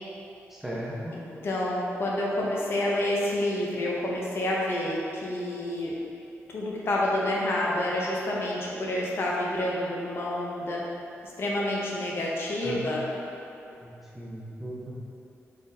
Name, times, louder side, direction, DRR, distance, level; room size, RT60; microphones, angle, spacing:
voice 1, 0.5-1.1 12.6-12.9 13.8-14.9, right 1 dB, 5° right, -6 dB, 0.5 m, -37 dB
voice 2, 1.4-5.9 6.5-10.8 11.4-13.0, left 1 dB, 50° left, -4 dB, 0.5 m, -28 dB
4.1 x 3.4 x 2.6 m, 2.8 s
wide cardioid pair, 140°, 5 cm